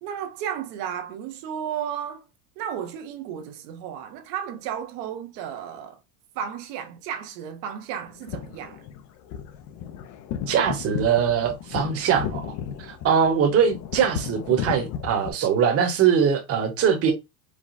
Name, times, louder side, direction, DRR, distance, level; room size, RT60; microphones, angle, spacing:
voice 1, 0.0-2.2 2.6-6.0 6.3-8.8, right 9 dB, 70° right, 1.2 m, -33 dB
sound 1, 8.1-15.3, left 9 dB, 35° left, 0.6 m, -34 dB
voice 2, 10.5-12.5 12.8-17.1, right 7 dB, 30° right, 1.1 m, -22 dB
4.9 x 2.2 x 4.1 m
supercardioid pair, 145°, 49 cm